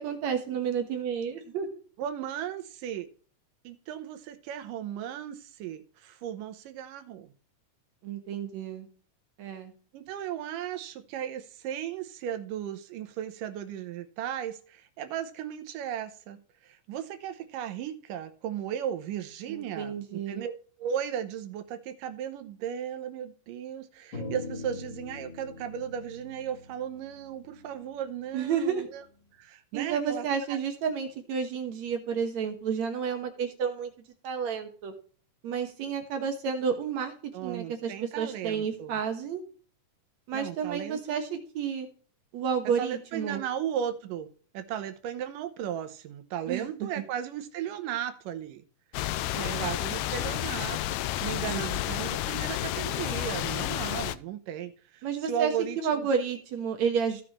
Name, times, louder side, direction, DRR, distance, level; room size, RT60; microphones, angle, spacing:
voice 1, 0.0-1.7 8.0-8.9 9.4-9.7 19.5-20.4 28.3-28.9 29.7-33.9 34.2-34.9 35.4-39.4 40.3-41.9 42.3-43.4 46.5-46.9 49.3-49.7 51.5-51.8 55.0-57.2, right 7 dB, 65° right, 2.4 m, -31 dB
voice 2, 2.0-3.1 3.6-7.3 9.9-29.0 29.3-30.2 30.5-30.6 37.3-38.9 40.3-41.0 42.8-44.3 44.5-48.6 49.1-51.0 51.2-56.1, right 9 dB, 90° right, 2.5 m, -36 dB
sound 1, 24.1-28.6, left 2 dB, 35° left, 3.6 m, -42 dB
sound 2, 48.9-54.2, left 14 dB, 85° left, 1.6 m, -31 dB
16.0 x 6.0 x 3.1 m
omnidirectional pair, 3.7 m